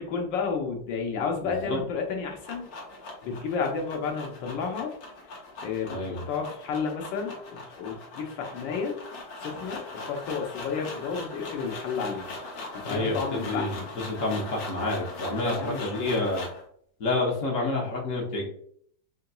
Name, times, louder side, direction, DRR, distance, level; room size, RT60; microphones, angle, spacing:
voice 1, 0.0-2.7 3.2-4.9 5.6-9.0 9.4-12.3 12.7-13.9 15.4-16.3, left 5 dB, 90° left, 2 dB, 1.5 m, -32 dB
voice 2, 1.4-1.8 5.9-6.2 12.8-16.5 17.0-18.5, left 2 dB, 50° left, -1 dB, 1.2 m, -29 dB
sound 1, 2.0-16.7, left 2 dB, 70° left, 1.5 m, -41 dB
4.1 x 3.8 x 2.2 m, 0.64 s
omnidirectional pair, 1.9 m